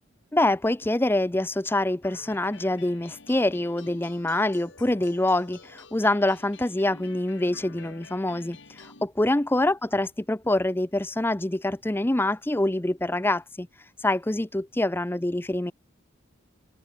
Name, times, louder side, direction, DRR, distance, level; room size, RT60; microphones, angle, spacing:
voice 1, 0.3-13.7 14.0-15.7, left 1 dB, 10° left, 0.6 m, -25 dB
sound 1, 2.0-9.0, left 4 dB, 60° left, 2.7 m, -49 dB
head